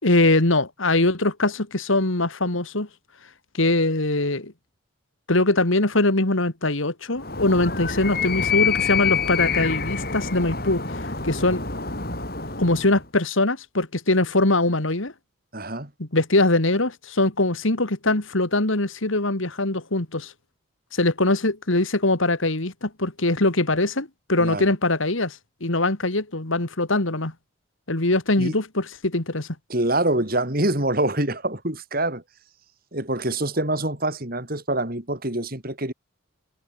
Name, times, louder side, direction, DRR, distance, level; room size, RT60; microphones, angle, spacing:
voice 1, 0.0-2.9 3.5-4.5 5.3-11.6 12.6-15.1 16.0-20.3 20.9-27.3 27.9-29.5, left 2 dB, 75° left, 2.5 m, -22 dB
Animal, 7.2-13.0, left 6 dB, 45° left, 7.9 m, -26 dB
voice 2, 15.5-15.9 24.4-24.6 28.4-28.5 29.7-32.2 32.9-35.9, right 1 dB, 45° right, 4.4 m, -25 dB
head